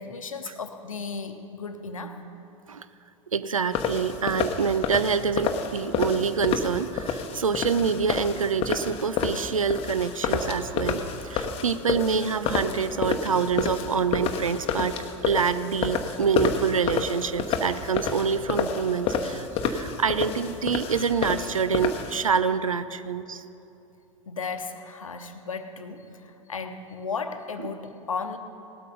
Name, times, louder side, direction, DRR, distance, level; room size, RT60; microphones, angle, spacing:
voice 1, 0.0-2.2 24.3-28.4, left 4 dB, 80° left, 7 dB, 0.9 m, -35 dB
voice 2, 3.3-14.9 15.3-23.4, right 6 dB, 80° right, 13 dB, 0.5 m, -26 dB
sound 1, 3.7-22.2, left 6 dB, 35° left, 0.9 m, -29 dB
18.0 x 8.2 x 5.2 m, 2.8 s
figure-of-eight pair, 85°, 17 cm